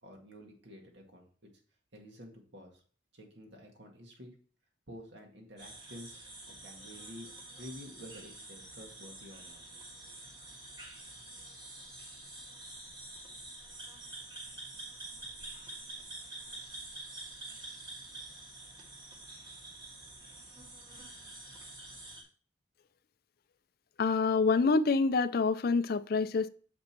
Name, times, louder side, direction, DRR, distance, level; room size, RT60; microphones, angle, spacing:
voice 1, 0.0-1.5 1.9-2.8 3.1-4.3 4.9-7.3 7.6-10.2, equal, 70° right, 1 dB, 2.0 m, -50 dB
sound 1, 5.6-22.2, right 2 dB, 20° right, 1.6 m, -47 dB
voice 2, 24.0-26.5, left 4 dB, 50° left, 14 dB, 0.4 m, -27 dB
7.0 x 5.2 x 4.4 m, 0.43 s
head